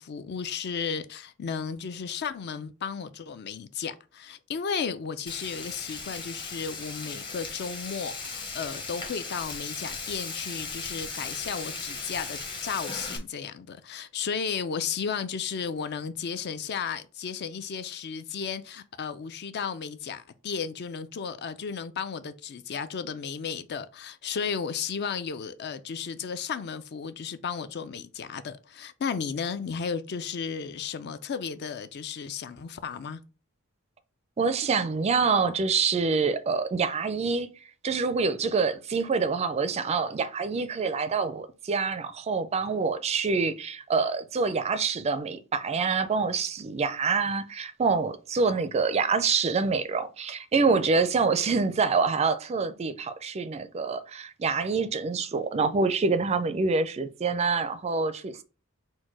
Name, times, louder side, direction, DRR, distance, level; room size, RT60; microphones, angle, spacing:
voice 1, 0.0-33.2, left 6 dB, 50° left, 0.4 m, -34 dB
Frying (food), 5.3-13.2, left 4 dB, 20° left, 0.7 m, -37 dB
voice 2, 34.4-37.5 37.8-58.4, right 4 dB, 30° right, 0.4 m, -26 dB
4.4 x 2.2 x 4.6 m
head